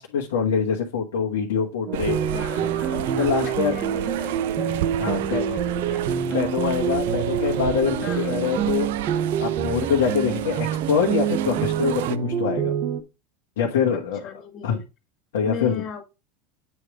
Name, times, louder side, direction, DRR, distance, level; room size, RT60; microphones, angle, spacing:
voice 1, 0.0-2.2 2.6-3.7 5.0-5.4 6.3-8.9 9.4-12.7 13.6-14.2 14.6-14.8 15.3-15.8, left 6 dB, 85° left, -1 dB, 1.4 m, -24 dB
sound 1, 1.9-13.0, right 8 dB, 50° right, 1.2 m, -26 dB
sound 2, 1.9-12.2, right 12 dB, 75° right, 0.5 m, -32 dB
voice 2, 2.3-4.8 5.1-6.4 8.0-8.4 13.9-14.8 15.4-16.0, left 7 dB, 40° left, 3 dB, 1.8 m, -37 dB
8.7 x 3.3 x 4.9 m, 0.27 s
hypercardioid pair, 100°, 0 cm